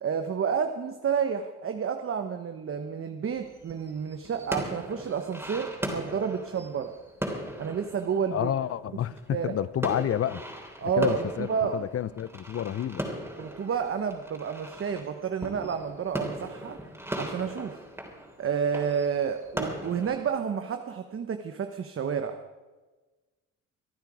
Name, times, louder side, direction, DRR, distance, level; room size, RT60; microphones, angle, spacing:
voice 1, 0.0-6.9 7.6-8.5 9.3-9.5 10.8-11.8 13.4-16.8 17.2-17.8 18.4-22.4, right 7 dB, 45° right, 7 dB, 1.0 m, -30 dB
sound 1, 3.3-9.5 9.8-20.4, right 1 dB, 10° right, 3.5 m, -38 dB
voice 2, 8.3-10.4 10.8-13.1, left 10 dB, 50° left, 17 dB, 0.7 m, -30 dB
26.0 x 8.9 x 4.9 m, 1.2 s
cardioid pair, 90°, 30 cm